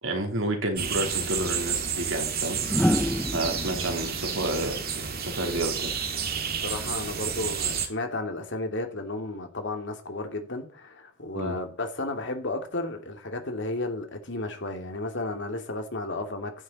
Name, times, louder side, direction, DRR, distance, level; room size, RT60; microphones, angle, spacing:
voice 1, 0.0-2.6 3.3-4.8 5.2-5.9 11.3-11.6, right 1 dB, 80° right, 3.6 m, -30 dB
sound 1, 0.7-7.9, right 7 dB, 50° right, 2.1 m, -30 dB
sound 2, 1.2-1.3 2.6-5.7 7.3-7.6, equal, 5° left, 0.9 m, -29 dB
voice 2, 6.6-16.5, left 2 dB, 65° left, 2.6 m, -33 dB
15.0 x 12.0 x 4.2 m
head